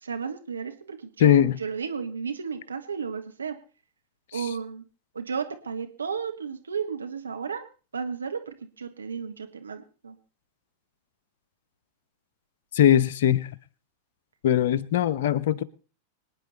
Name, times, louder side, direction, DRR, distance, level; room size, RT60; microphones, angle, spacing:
voice 1, 0.0-3.6 4.3-4.8 5.1-7.6 7.9-10.2, right 6 dB, 75° right, 1.4 m, -33 dB
voice 2, 1.2-1.6 4.3-4.5 12.7-13.5 14.4-15.6, left 10 dB, 55° left, 0.8 m, -21 dB
24.5 x 9.9 x 4.1 m
figure-of-eight pair, 90°, 0 cm